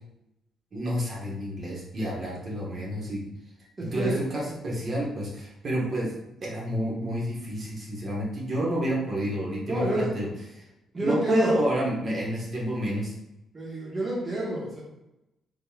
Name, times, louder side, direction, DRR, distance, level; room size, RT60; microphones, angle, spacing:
voice 1, 0.7-3.2 3.9-6.1 6.4-10.6 11.0-13.1, equal, 50° right, -4 dB, 1.2 m, -29 dB
voice 2, 3.8-4.2 9.7-10.1 10.9-11.6 13.5-14.8, right 1 dB, 25° right, -5 dB, 1.1 m, -28 dB
3.8 x 3.1 x 2.3 m, 0.91 s
cardioid pair, 90°, 0 cm